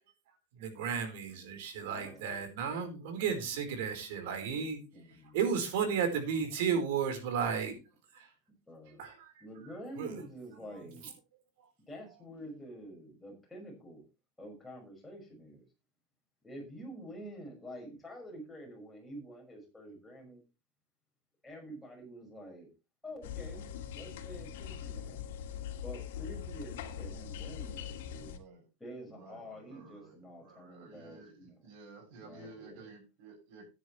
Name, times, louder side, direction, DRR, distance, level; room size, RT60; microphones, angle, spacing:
voice 1, 0.5-4.8 5.3-7.7 8.1-8.3 8.9-10.2 10.7-10.8, right 7 dB, 65° right, 4.4 m, -34 dB
voice 2, 1.9-2.2 4.9-5.4 8.7-9.1 9.4-11.1 11.9-14.0 14.4-15.6 16.4-20.4 21.4-22.7 23.0-25.3 25.8-28.3 28.8-31.7 32.2-32.9, equal, 5° left, 5.9 m, -48 dB
sound 1, 23.2-28.4, left 8 dB, 80° left, 2.4 m, -42 dB
voice 3, 28.3-28.7 29.1-33.6, right 3 dB, 50° right, 7.4 m, -53 dB
14.5 x 10.0 x 3.3 m
supercardioid pair, 160°, 0 cm